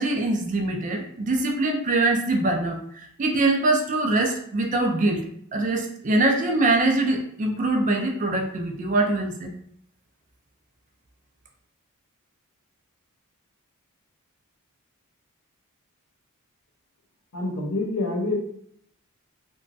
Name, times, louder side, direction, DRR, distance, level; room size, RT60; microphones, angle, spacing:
voice 1, 0.0-5.3 5.5-9.5, right 2 dB, 35° right, 2 dB, 0.4 m, -23 dB
voice 2, 17.3-18.3, left 2 dB, 75° left, -1 dB, 0.8 m, -26 dB
3.0 x 2.2 x 2.6 m, 0.67 s
head